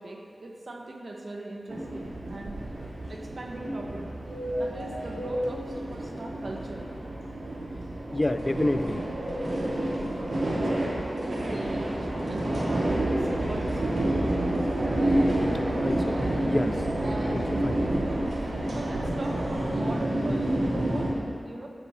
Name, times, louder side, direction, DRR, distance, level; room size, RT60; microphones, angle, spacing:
voice 1, 0.0-4.1 4.6-6.9 10.3-14.9 18.7-21.7, right 2 dB, 65° right, 1 dB, 1.3 m, -39 dB
sound 1, 1.7-21.1, right 1 dB, 80° right, 2.6 m, -29 dB
voice 2, 8.1-9.1 15.8-16.8 17.3-17.9, left 1 dB, 30° left, 10 dB, 0.4 m, -29 dB
12.5 x 8.5 x 4.2 m, 2.2 s
wide cardioid pair, 55°, 0 cm